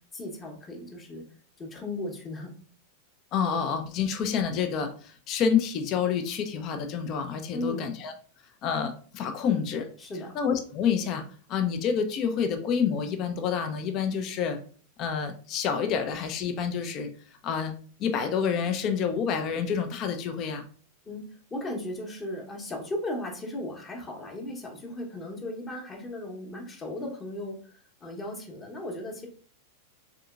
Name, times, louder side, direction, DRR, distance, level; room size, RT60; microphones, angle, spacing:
voice 1, 0.1-1.2 1.6-2.5 7.5-7.9 10.0-10.3 21.0-29.3, left 1 dB, 20° left, 1 dB, 0.9 m, -36 dB
voice 2, 3.3-8.1 8.6-9.9 10.3-11.2 11.5-14.6 15.0-17.1 17.4-17.7 18.0-20.7, left 7 dB, 35° left, 6 dB, 0.5 m, -28 dB
3.6 x 3.5 x 2.3 m, 0.43 s
figure-of-eight pair, 90°, 0 cm